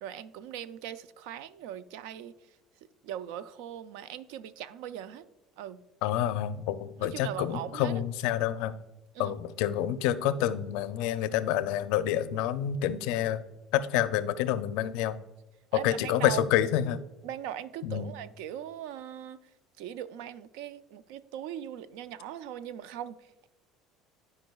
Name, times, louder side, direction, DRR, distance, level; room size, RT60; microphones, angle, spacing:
voice 1, 0.0-2.6 3.0-5.3 5.6-5.9 7.0-8.0 9.1-9.4 15.7-16.4 17.2-19.5 19.8-23.5, right 10 dB, 85° right, 15 dB, 0.3 m, -40 dB
voice 2, 6.0-8.7 9.2-13.4 13.7-15.2 15.8-17.0 17.8-18.1, left 11 dB, 80° left, 13 dB, 0.4 m, -28 dB
12.0 x 4.8 x 2.3 m, 0.98 s
supercardioid pair, 105°, 0 cm